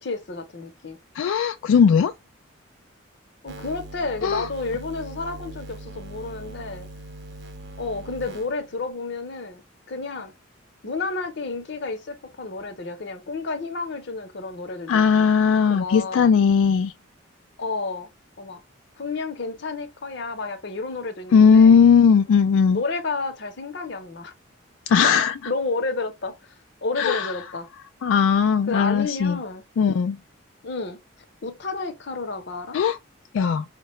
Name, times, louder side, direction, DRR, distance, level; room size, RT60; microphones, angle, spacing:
voice 1, 0.0-1.0 3.4-6.9 7.8-9.6 9.9-10.3 10.8-15.3 15.7-16.3 17.6-18.1 18.4-18.6 19.0-21.8 22.7-24.3 25.5-26.4 26.8-27.7 28.7-29.6 30.6-31.0 31.4-32.8, left 3 dB, 55° left, 0.7 m, -31 dB
voice 2, 1.1-2.1 4.2-4.5 14.9-16.9 21.3-22.8 24.9-25.3 27.0-27.4 28.0-29.4 29.8-30.2 32.7-33.0 33.3-33.6, left 6 dB, 80° left, 0.3 m, -18 dB
sound 1, 3.5-8.9, right 1 dB, 55° right, 0.7 m, -41 dB
4.7 x 2.2 x 3.0 m
head